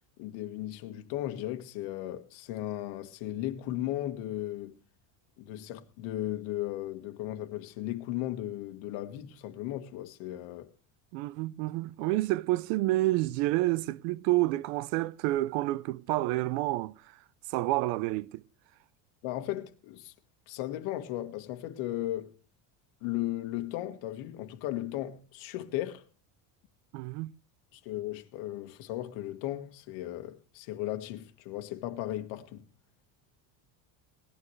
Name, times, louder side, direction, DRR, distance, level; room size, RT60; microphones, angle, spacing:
voice 1, 0.2-4.8 5.4-10.7 19.2-20.1 20.5-22.3 23.0-26.0 27.7-32.7, left 14 dB, 75° left, 1.8 m, -36 dB
voice 2, 11.1-17.2 17.5-18.4 26.9-27.3, right 18 dB, 80° right, 0.7 m, -29 dB
19.0 x 12.0 x 3.2 m
cardioid pair, 155°, 48 cm